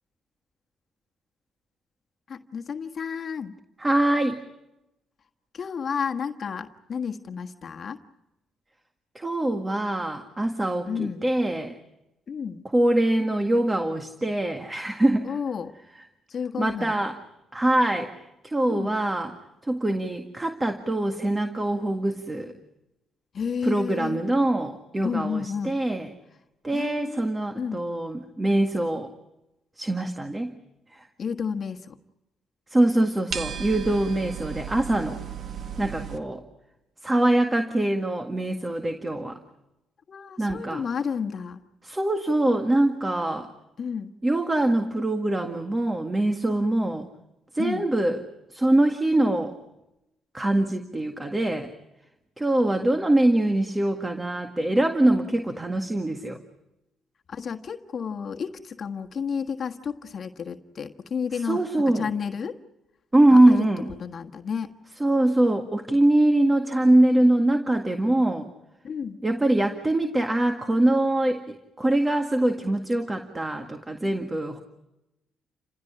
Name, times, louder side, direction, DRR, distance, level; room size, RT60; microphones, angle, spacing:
voice 1, 2.3-3.5 5.5-8.0 10.8-11.2 12.3-12.6 15.2-15.7 16.3-17.0 18.7-18.9 23.3-24.2 25.0-25.8 26.7-27.2 27.5-27.8 31.2-32.0 40.1-41.6 43.8-44.1 47.6-47.9 57.3-62.6 63.3-63.6 64.0-64.8 68.8-69.2, left 6 dB, 50° left, 5 dB, 1.5 m, -31 dB
voice 2, 3.8-4.4 9.2-11.8 12.7-15.3 16.6-17.2 17.5-18.1 18.4-19.3 19.7-22.5 23.6-26.1 26.6-29.1 29.8-30.5 30.9-31.0 32.7-35.2 35.8-36.4 37.0-39.4 40.4-40.8 41.8-43.5 44.2-47.1 47.5-48.2 48.5-49.5 50.3-51.7 52.4-56.4 61.4-62.1 63.1-63.9 65.0-68.5 69.2-74.6, right 1 dB, 15° right, 6 dB, 1.9 m, -23 dB
sound 1, 33.3-36.2, right 8 dB, 55° right, 1.9 m, -35 dB
29.5 x 16.5 x 9.9 m, 0.94 s
cardioid pair, 90°, 0 cm